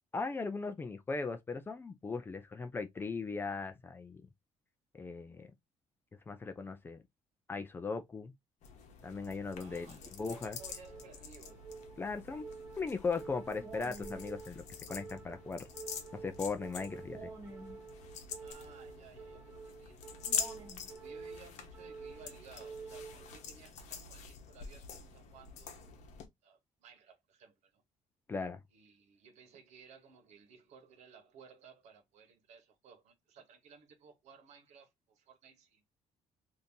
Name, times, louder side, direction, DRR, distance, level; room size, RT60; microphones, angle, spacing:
voice 1, 0.1-4.2 4.9-5.5 6.3-7.0 7.5-8.3 9.0-10.6 12.0-12.5 12.8-15.7 16.2-17.3 28.3-28.6, left 4 dB, 20° left, 0.4 m, -38 dB
sound 1, 8.6-26.3, left 6 dB, 70° left, 0.9 m, -45 dB
voice 2, 9.5-11.7 18.4-20.5 20.9-25.9 26.4-27.8 28.7-35.9, right 5 dB, 70° right, 1.1 m, -58 dB
sound 2, 10.6-23.6, right 4 dB, 25° right, 1.7 m, -49 dB
3.6 x 2.6 x 2.7 m
cardioid pair, 160°, 12 cm